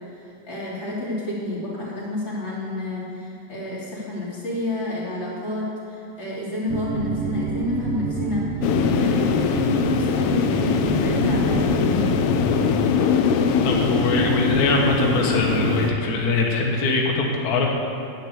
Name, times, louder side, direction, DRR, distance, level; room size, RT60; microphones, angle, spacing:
voice 1, 0.1-12.1, left 2 dB, 20° left, -7 dB, 3.2 m, -29 dB
sound 1, 6.7-15.9, right 6 dB, 90° right, 1.1 m, -29 dB
sound 2, 8.6-15.9, left 7 dB, 85° left, 1.3 m, -22 dB
voice 2, 13.6-17.7, left 3 dB, 45° left, 0 dB, 1.2 m, -22 dB
10.5 x 9.8 x 8.1 m, 2.7 s
omnidirectional pair, 3.4 m